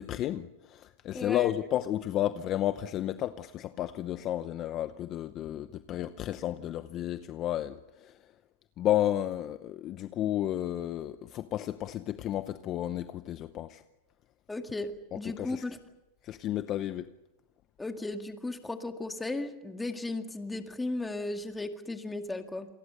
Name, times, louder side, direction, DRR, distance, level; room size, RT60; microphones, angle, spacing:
voice 1, 0.0-8.2 8.8-13.8 15.1-15.6 16.2-17.1, left 12 dB, 30° left, 0.8 m, -32 dB
voice 2, 1.1-1.5 14.5-14.9 15.1-15.8 17.8-22.7, left 2 dB, 5° left, 2.0 m, -35 dB
28.5 x 23.5 x 6.8 m
supercardioid pair, 150°, 0 cm